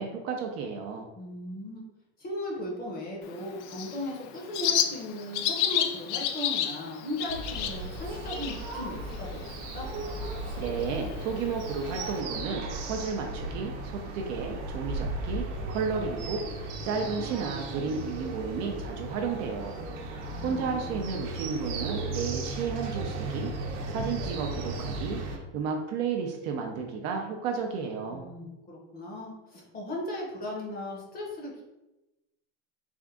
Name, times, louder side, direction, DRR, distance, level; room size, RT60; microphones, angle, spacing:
voice 1, 0.0-1.1 10.6-19.8 20.4-28.3, right 5 dB, 45° right, 2 dB, 0.5 m, -33 dB
voice 2, 1.2-1.8 2.2-9.5 9.7-9.9 19.8-21.0 28.1-31.6, left 1 dB, 25° left, -2 dB, 0.9 m, -37 dB
Bird, 3.2-12.2, left 10 dB, 75° left, 0.5 m, -33 dB
sound 1, 7.3-25.4, right 2 dB, 75° right, 0.8 m, -36 dB
3.5 x 2.4 x 3.6 m, 0.98 s
supercardioid pair, 145°, 36 cm